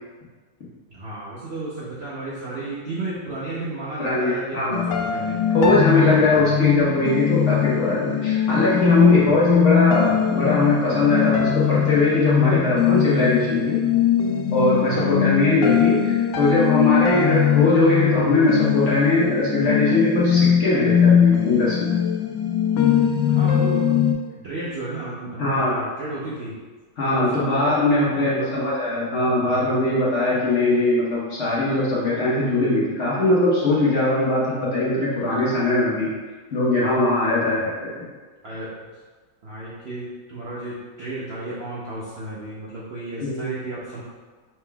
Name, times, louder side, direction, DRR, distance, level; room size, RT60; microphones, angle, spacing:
voice 1, 0.9-4.8 5.1-5.5 6.0-6.6 9.2-9.5 14.9-15.1 23.2-23.9 24.4-26.6 27.1-27.8 28.1-28.5 29.4-29.8 37.3-37.7 38.4-38.7 39.4-44.0, right 2 dB, 55° right, -8 dB, 0.7 m, -33 dB
voice 2, 4.0-4.8 5.5-13.8 14.5-21.9 25.4-25.8 27.0-36.1 36.5-38.0 43.2-43.4, left 2 dB, 50° left, -7 dB, 1.2 m, -20 dB
sound 1, 4.7-24.1, left 9 dB, 80° left, 1.2 m, -21 dB
5.6 x 3.6 x 2.3 m, 1.4 s
omnidirectional pair, 1.9 m